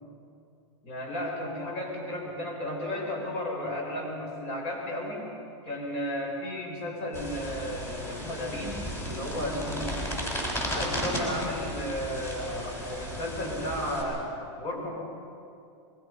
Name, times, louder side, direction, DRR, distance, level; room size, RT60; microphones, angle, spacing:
voice 1, 0.8-5.3 5.6-10.3 10.7-14.3 14.6-14.9, left 1 dB, 45° left, -1 dB, 7.8 m, -33 dB
sound 1, 7.1-14.0, equal, 15° left, 6.1 m, -35 dB
24.5 x 23.0 x 5.7 m, 2.6 s
supercardioid pair, 135°, 15 cm